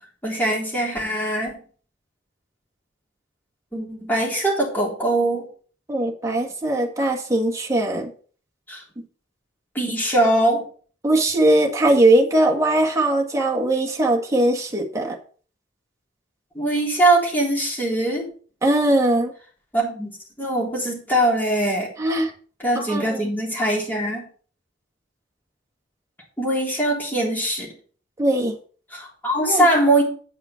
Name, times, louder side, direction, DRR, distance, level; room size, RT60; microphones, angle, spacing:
voice 1, 0.2-1.6 3.7-5.5 8.7-8.8 9.8-10.6 16.6-18.3 19.7-20.1 20.4-21.9 22.6-24.3 26.4-27.7 28.9-30.0, right 1 dB, 10° left, -3 dB, 3.6 m, -21 dB
voice 2, 5.9-8.1 11.0-15.2 18.6-19.3 22.0-22.3 22.8-23.2 28.2-28.6 29.4-29.6, right 1 dB, 15° right, -1 dB, 1.8 m, -20 dB
8.9 x 5.6 x 5.8 m, 0.43 s
head